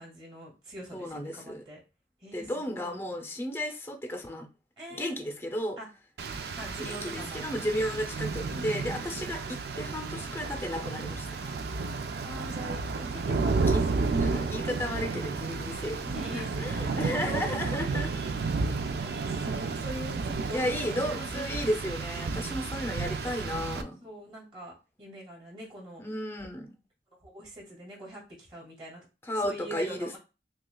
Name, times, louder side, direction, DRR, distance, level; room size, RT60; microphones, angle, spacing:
voice 1, 0.0-1.8 2.2-3.0 4.8-5.2 5.8-5.9 6.6-7.4 8.3-9.3 11.4-11.8 12.2-14.5 16.1-17.5 19.0-21.7 24.0-26.0 27.2-29.1 29.3-30.2, equal, 30° right, 2.2 m, -44 dB
voice 2, 0.9-1.6 2.3-4.5 4.9-5.8 6.8-11.3 13.6-13.8 14.1-18.1 20.5-24.0 26.0-26.8 29.2-30.2, equal, 15° left, 0.6 m, -33 dB
Rain, 6.2-23.8, right 4 dB, 60° right, 0.4 m, -32 dB
6.1 x 2.4 x 2.3 m
head